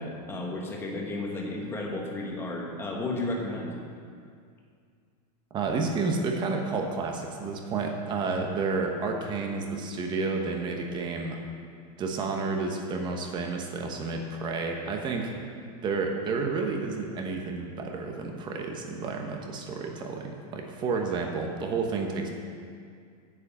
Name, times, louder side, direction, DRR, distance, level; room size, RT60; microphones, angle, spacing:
voice 1, 0.0-3.7, left 2 dB, 10° left, -1 dB, 1.2 m, -33 dB
voice 2, 5.5-11.4 12.0-15.3 15.8-22.3, right 4 dB, 20° right, 2 dB, 1.0 m, -30 dB
7.7 x 7.1 x 8.2 m, 2.2 s
supercardioid pair, 165°, 21 cm